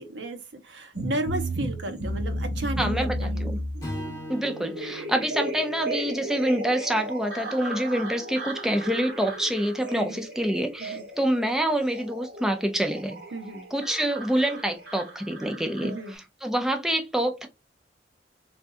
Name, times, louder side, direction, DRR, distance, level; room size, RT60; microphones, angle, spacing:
voice 1, 0.0-3.5 9.9-10.2 10.8-11.0 13.3-13.7 15.8-16.2, right 2 dB, 80° right, 0.9 m, -34 dB
sound 1, 0.9-16.1, right 1 dB, 60° right, 2.1 m, -34 dB
voice 2, 2.8-3.6 4.3-13.2 13.7-17.5, right 1 dB, 5° right, 0.4 m, -27 dB
Strum, 3.8-8.1, left 1 dB, 20° left, 1.7 m, -41 dB
3.7 x 3.5 x 2.5 m
head